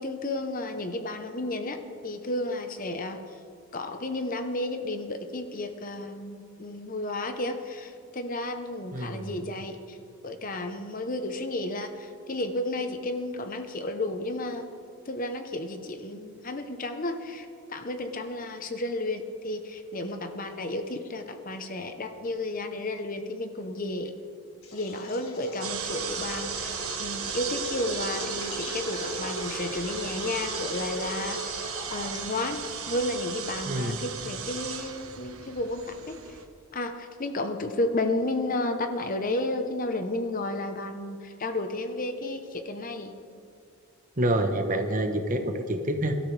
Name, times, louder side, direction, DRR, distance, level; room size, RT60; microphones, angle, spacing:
voice 1, 0.0-3.4 3.7-10.0 10.2-14.7 15.1-24.1 24.7-36.4 36.7-43.2, left 2 dB, 40° left, 7 dB, 0.9 m, -32 dB
voice 2, 8.9-9.3 33.7-34.0 44.2-46.2, right 1 dB, 35° right, 6 dB, 1.0 m, -27 dB
sound 1, 24.6-33.2, left 2 dB, 70° left, 2.0 m, -39 dB
sound 2, 25.6-36.4, right 7 dB, 75° right, 1.2 m, -36 dB
23.5 x 13.0 x 3.4 m, 2.3 s
head